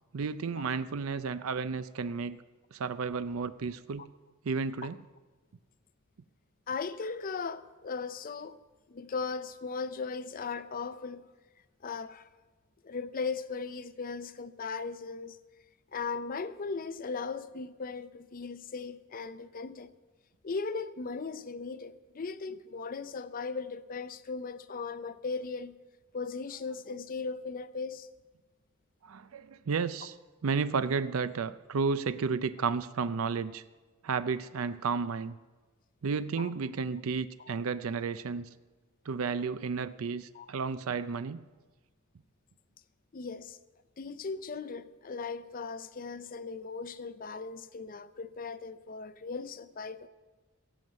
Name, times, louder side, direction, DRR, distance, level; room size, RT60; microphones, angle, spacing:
voice 1, 0.1-2.4 2.7-4.1 4.4-5.0 29.0-30.2 30.4-33.6 34.0-35.4 36.0-38.5 39.1-41.4, right 5 dB, 80° right, 0.5 m, -32 dB
voice 2, 6.7-8.6 8.9-11.2 11.8-12.3 12.8-15.4 15.9-19.9 20.4-25.8 26.1-28.1 36.4-36.5 37.4-37.6 40.3-40.5 43.1-43.6 44.0-50.1, left 4 dB, 40° left, 0.5 m, -38 dB
16.5 x 7.7 x 7.5 m
head